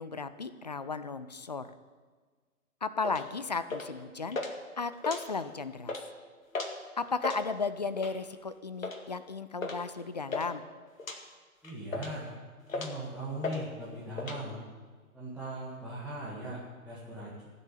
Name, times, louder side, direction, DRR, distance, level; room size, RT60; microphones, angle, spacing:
voice 1, 0.0-1.7 2.8-4.4 4.8-6.0 7.0-10.6, left 4 dB, 30° left, 13 dB, 0.5 m, -35 dB
sound 1, 3.0-3.3 3.7-4.0 4.3-4.5 4.9-5.5 5.8-6.0 6.5-6.8 7.1-7.4 8.0-8.2 8.8-9.0 9.6-9.8 10.1-10.5 11.0-11.2 11.6-12.2 12.7-13.0 13.4-13.6 13.9-14.4, left 3 dB, 65° left, 2.1 m, -36 dB
voice 2, 11.6-12.3 12.7-14.6 15.1-17.5, right 1 dB, 5° right, -9 dB, 1.9 m, -39 dB
16.0 x 6.9 x 9.0 m, 1.5 s
figure-of-eight pair, 130°, 44 cm